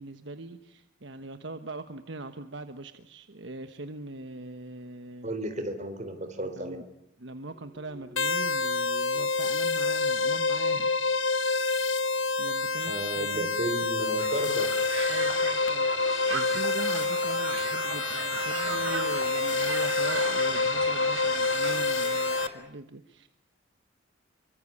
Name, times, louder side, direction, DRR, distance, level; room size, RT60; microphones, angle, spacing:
voice 1, 0.0-5.3 6.4-6.8 7.2-11.1 11.5-11.9 12.4-13.5 15.1-23.3, right 2 dB, 60° right, 9 dB, 1.2 m, -41 dB
voice 2, 5.2-6.8 12.8-14.7, right 1 dB, 35° right, 8 dB, 4.0 m, -33 dB
sound 1, 7.5-13.6, equal, 5° right, 5.5 m, -55 dB
sound 2, 8.2-22.5, left 3 dB, 85° left, 1.7 m, -27 dB
Crowd, 14.2-22.5, right 5 dB, 80° right, 5.5 m, -36 dB
27.5 x 24.0 x 8.6 m, 0.77 s
head